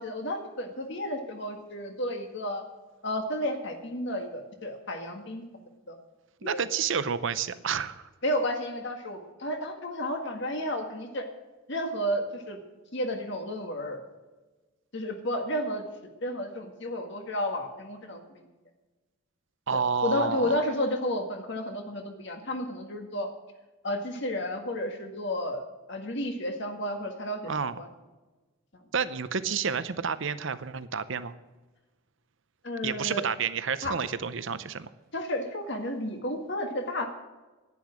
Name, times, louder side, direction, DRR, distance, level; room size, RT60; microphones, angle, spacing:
voice 1, 0.0-2.6 3.0-6.0 6.4-6.7 8.2-11.2 11.7-12.6 12.9-14.0 14.9-15.9 16.2-18.5 19.7-23.3 23.8-25.6 25.9-27.9 32.6-33.2 33.8-33.9 35.1-37.1, left 1 dB, 55° left, 4 dB, 1.7 m, -32 dB
voice 2, 6.4-8.0 19.7-20.6 27.5-27.8 28.9-31.3 32.8-34.9, right 6 dB, 60° right, 13 dB, 0.7 m, -30 dB
10.5 x 10.0 x 6.2 m, 1.2 s
head